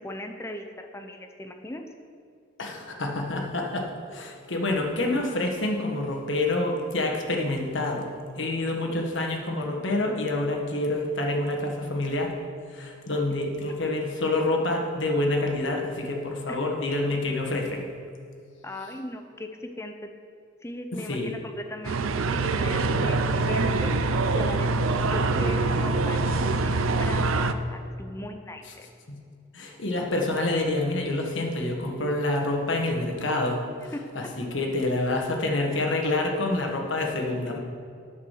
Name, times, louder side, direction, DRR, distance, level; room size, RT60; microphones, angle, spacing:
voice 1, 0.0-1.8 16.5-16.6 18.6-19.5 19.8-19.9 20.6-22.0 22.3-23.2 23.5-28.9 33.9-34.0, left 1 dB, 15° left, 5 dB, 0.5 m, -38 dB
voice 2, 2.6-8.1 8.4-12.3 12.7-17.9 21.1-21.3 29.1-29.2 29.5-33.6 33.8-37.6, left 2 dB, 65° left, 1 dB, 1.4 m, -27 dB
sound 1, 21.8-27.5, right 3 dB, 85° right, 0.5 m, -24 dB
9.5 x 6.1 x 6.6 m, 2.4 s
head